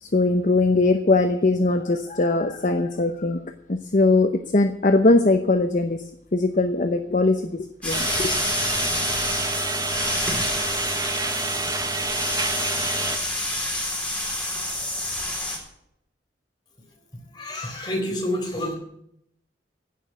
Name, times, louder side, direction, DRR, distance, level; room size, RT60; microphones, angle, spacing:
voice 1, 0.0-3.4 3.7-6.0 6.3-8.3, left 2 dB, 45° left, 7 dB, 0.8 m, -21 dB
sound 1, 7.8-15.6, left 1 dB, 5° left, 3.9 m, -28 dB
sound 2, 7.9-13.2, right 3 dB, 20° right, 1.0 m, -28 dB
voice 2, 17.3-18.7, left 1 dB, 25° left, 1 dB, 3.9 m, -28 dB
16.0 x 6.5 x 9.2 m, 0.75 s
head